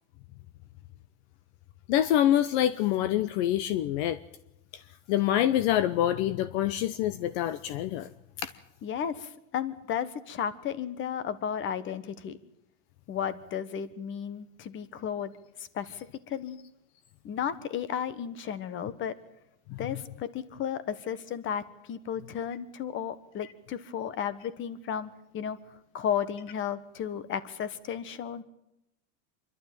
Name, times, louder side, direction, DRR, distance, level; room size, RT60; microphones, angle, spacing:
voice 1, 1.9-4.2 5.1-8.1 8.4-8.5 19.7-19.8, left 12 dB, 55° left, 15 dB, 0.8 m, -26 dB
voice 2, 8.8-12.4 13.1-15.3 15.6-16.6 17.2-19.2 19.8-28.4, left 8 dB, 30° left, 17 dB, 1.3 m, -34 dB
25.5 x 12.0 x 9.1 m, 0.84 s
supercardioid pair, 140°, 38 cm